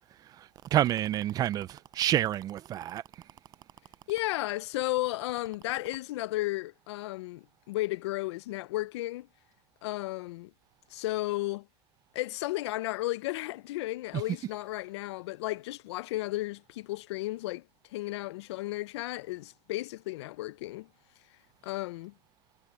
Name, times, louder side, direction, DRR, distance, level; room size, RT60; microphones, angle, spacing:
voice 1, 0.7-3.0, right 12 dB, 25° right, 0.4 m, -28 dB
voice 2, 4.1-9.3 9.8-10.5 10.9-11.7 12.1-17.6 17.9-20.9 21.6-22.1, left 17 dB, 70° left, 0.6 m, -34 dB
supercardioid pair, 145°, 15 cm